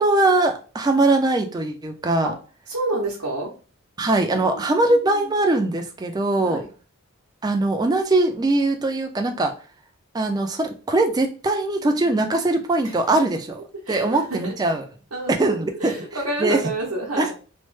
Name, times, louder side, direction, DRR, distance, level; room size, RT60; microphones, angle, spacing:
voice 1, 0.0-2.3 4.0-6.6 7.4-9.5 10.1-14.9 15.3-15.9 16.4-16.6 17.2-17.3, right 2 dB, 20° right, 5 dB, 0.3 m, -21 dB
voice 2, 2.7-3.5 4.3-4.7 6.4-6.7 11.9-12.2 12.8-12.9 13.9-14.5 15.1-15.5 15.8-17.3, right 2 dB, 85° right, -3 dB, 0.8 m, -29 dB
3.1 x 2.0 x 3.1 m, 0.36 s
head